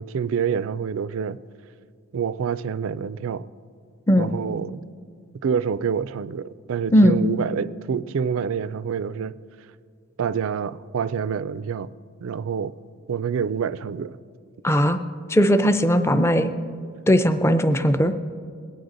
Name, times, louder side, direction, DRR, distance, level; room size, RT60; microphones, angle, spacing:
voice 1, 0.0-1.4 2.1-3.4 4.2-4.8 5.4-9.4 10.2-11.9 12.2-12.7 13.1-14.2, right 7 dB, 60° right, 16 dB, 0.3 m, -27 dB
voice 2, 14.6-15.0 15.3-16.5 17.1-18.1, equal, 10° left, 9 dB, 0.4 m, -18 dB
21.5 x 9.4 x 3.8 m, 2.2 s
head